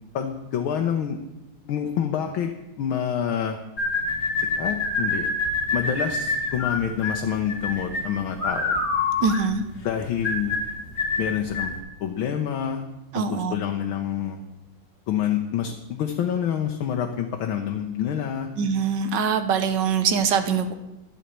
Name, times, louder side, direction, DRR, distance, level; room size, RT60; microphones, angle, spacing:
voice 1, 0.1-1.2 1.6-3.6 4.4-5.3 5.7-8.8 9.8-10.6 11.2-11.7 12.0-12.8 13.1-14.4 15.1-18.5, left 9 dB, 90° left, 4 dB, 1.7 m, -27 dB
sound 1, 3.8-11.8, left 3 dB, 55° left, 2.6 m, -26 dB
voice 2, 9.2-9.6 13.1-13.5 18.6-20.7, right 6 dB, 65° right, 9 dB, 1.4 m, -23 dB
12.5 x 5.6 x 8.5 m, 0.95 s
omnidirectional pair, 2.2 m